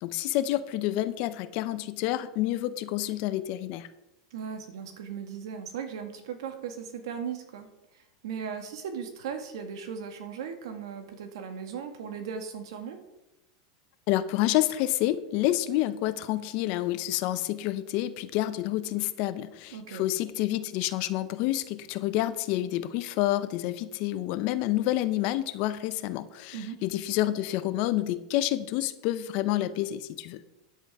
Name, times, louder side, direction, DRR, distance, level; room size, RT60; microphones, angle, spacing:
voice 1, 0.0-3.9 14.1-30.4, left 14 dB, 50° left, 13 dB, 0.7 m, -28 dB
voice 2, 4.3-7.7 7.9-13.0 19.7-20.1 26.5-26.8, right 7 dB, 80° right, 6 dB, 1.9 m, -37 dB
10.0 x 8.1 x 4.8 m, 0.93 s
supercardioid pair, 145°, 3 cm